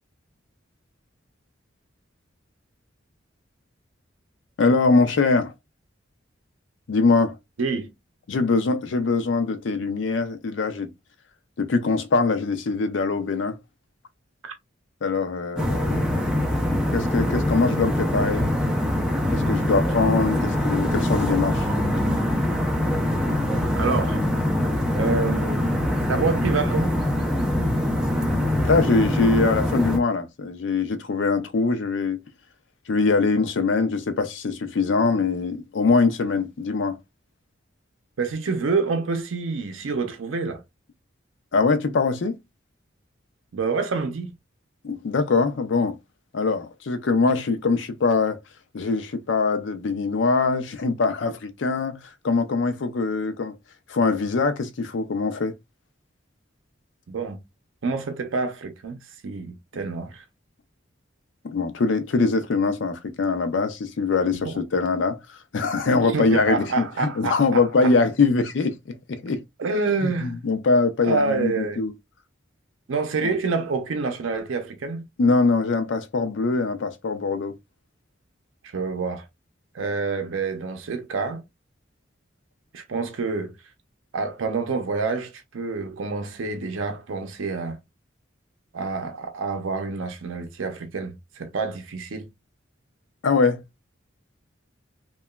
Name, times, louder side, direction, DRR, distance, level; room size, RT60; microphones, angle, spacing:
voice 1, 4.6-5.5 6.9-7.4 8.3-10.9 11.6-13.6 15.0-16.2 16.9-18.5 19.3-21.7 28.6-32.2 32.9-37.0 41.5-42.4 44.8-46.0 46.3-48.4 48.7-53.5 53.9-55.5 61.4-65.2 65.5-69.4 70.0-71.9 73.2-73.3 75.2-77.6 93.2-93.6, left 4 dB, 70° left, 0.5 m, -23 dB
voice 2, 7.6-7.9 14.4-14.6 23.8-24.2 25.0-27.0 38.2-40.6 43.5-44.3 57.1-57.4 57.8-59.0 59.2-60.2 64.3-64.6 66.1-67.9 69.6-70.3 71.0-71.8 72.9-75.1 78.6-79.2 79.7-81.4 82.7-83.5 84.1-87.8 88.7-92.3, right 4 dB, 85° right, 0.5 m, -27 dB
sound 1, 15.6-30.0, left 1 dB, 5° right, 0.6 m, -23 dB
2.9 x 2.2 x 2.2 m
head